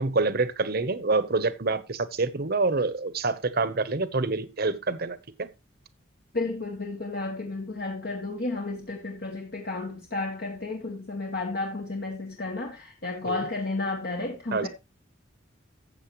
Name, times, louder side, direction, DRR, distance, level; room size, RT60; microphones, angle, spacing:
voice 1, 0.0-5.5 13.2-13.4 14.5-14.7, right 3 dB, 50° right, 1.0 m, -27 dB
voice 2, 6.3-14.7, left 3 dB, 55° left, 1.5 m, -32 dB
13.0 x 7.6 x 3.1 m
head